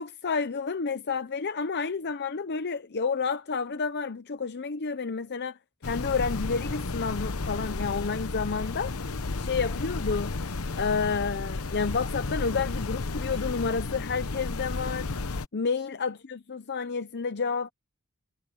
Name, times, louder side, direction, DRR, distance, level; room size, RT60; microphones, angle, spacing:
voice 1, 0.0-5.6 5.8-9.0 9.4-10.3 10.8-15.1 15.5-17.7, left 5 dB, 50° left, 0.7 m, -30 dB
sound 1, 5.8-15.5, left 3 dB, 75° left, 1.0 m, -33 dB
head